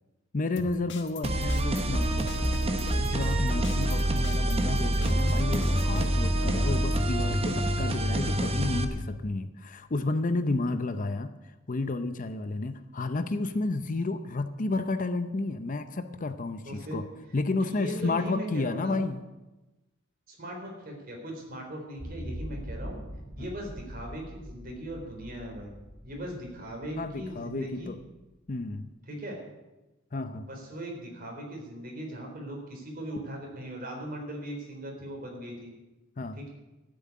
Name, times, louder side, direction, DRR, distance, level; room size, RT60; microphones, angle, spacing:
voice 1, 0.3-2.7 3.0-11.3 11.7-17.1 17.3-19.2 23.4-23.5 27.0-28.0 28.5-28.9 30.1-30.5 36.2-36.4, left 2 dB, 40° left, 10 dB, 0.7 m, -31 dB
sound 1, 0.6-6.1, left 1 dB, 60° left, 1.4 m, -41 dB
sound 2, 1.2-8.8, right 1 dB, 30° right, 1.0 m, -26 dB
voice 2, 16.7-17.0 17.6-19.0 20.3-23.0 23.4-25.7 26.0-27.9 29.1-29.4 30.4-35.7 36.4-36.5, equal, 45° right, 1 dB, 4.0 m, -39 dB
sound 3, 22.0-28.0, equal, 10° right, 3.0 m, -43 dB
13.0 x 7.8 x 9.5 m, 1.1 s
head